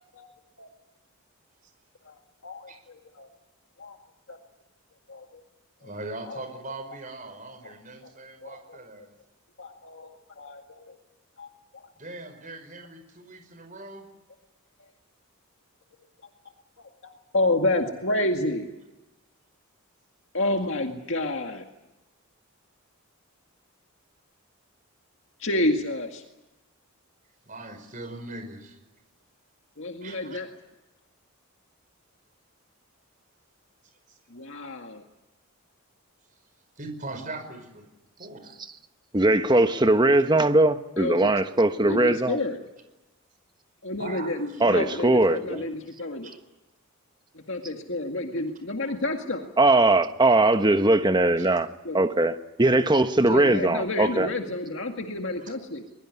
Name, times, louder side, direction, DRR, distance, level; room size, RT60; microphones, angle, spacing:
voice 1, 2.0-3.3 3.8-4.0 4.3-4.4 5.1-5.4 5.8-5.9 6.3-6.4 7.6-7.7 8.4-9.1 9.6-11.0 11.4-11.5 11.7-11.8 17.0-18.6 20.3-21.7 25.4-26.2 29.8-30.5 34.3-35.0 41.0-41.3 41.8-42.6 43.8-46.3 47.3-49.5 51.8-52.0 53.2-55.9, left 1 dB, 60° left, 2.1 m, -30 dB
voice 2, 5.8-9.1 12.0-14.0 27.5-28.8 30.0-30.4 36.8-37.9 38.2-38.5 44.0-44.4 46.2-46.4 48.8-48.9 51.4-51.5, right 2 dB, 35° right, 5.2 m, -40 dB
voice 3, 39.1-42.4 44.6-45.6 49.6-51.7 51.9-54.3, right 2 dB, 20° right, 1.0 m, -20 dB
23.0 x 22.0 x 9.6 m
head